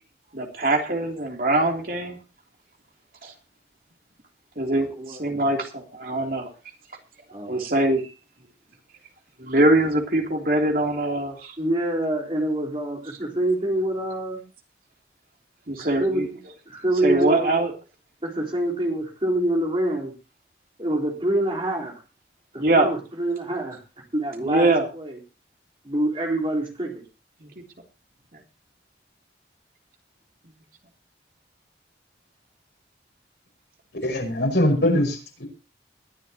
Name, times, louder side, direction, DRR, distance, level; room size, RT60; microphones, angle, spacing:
voice 1, 0.3-2.2 3.2-3.3 4.6-6.5 7.5-8.1 9.4-11.6 15.7-16.3 17.0-17.7 22.6-22.9 24.4-24.9 27.4-27.5, right 2 dB, 50° right, 1 dB, 3.2 m, -22 dB
voice 2, 7.3-7.6 11.6-14.4 15.8-16.4 16.7-17.6 18.2-20.1 20.8-22.0 22.5-23.8 24.1-25.2 25.8-27.0 34.4-34.5, right 1 dB, 30° right, 0 dB, 4.2 m, -26 dB
voice 3, 33.9-35.5, left 1 dB, 75° left, 3 dB, 5.6 m, -22 dB
21.5 x 12.0 x 2.9 m, 0.31 s
head